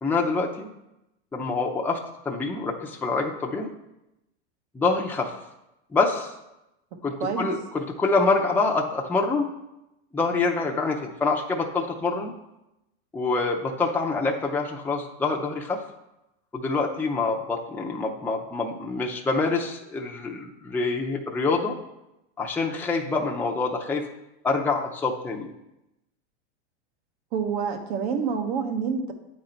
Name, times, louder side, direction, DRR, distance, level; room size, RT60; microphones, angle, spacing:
voice 1, 0.0-0.7 1.3-2.0 2.3-3.7 4.7-5.3 5.9-6.3 7.0-9.5 10.1-12.3 13.1-15.8 16.5-21.8 22.4-24.0 24.4-25.5, left 3 dB, 5° left, -1 dB, 0.6 m, -26 dB
voice 2, 7.2-7.5 27.3-29.1, right 6 dB, 60° right, 5 dB, 1.3 m, -27 dB
9.0 x 4.0 x 4.3 m, 0.91 s
supercardioid pair, 130°, 35 cm